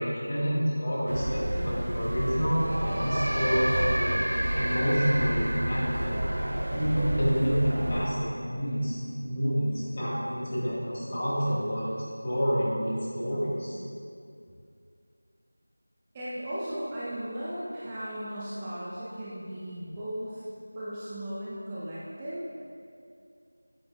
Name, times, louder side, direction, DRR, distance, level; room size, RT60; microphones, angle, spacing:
voice 1, 0.0-4.1 4.5-6.2 6.7-12.0 12.2-13.8, equal, 30° left, -7 dB, 1.5 m, -28 dB
sound 1, 1.1-8.1, right 1 dB, 60° right, 0.8 m, -29 dB
voice 2, 16.1-20.5 20.7-22.4, right 1 dB, 15° right, -10 dB, 0.6 m, -36 dB
8.7 x 6.8 x 2.3 m, 2.4 s
figure-of-eight pair, 175°, 0 cm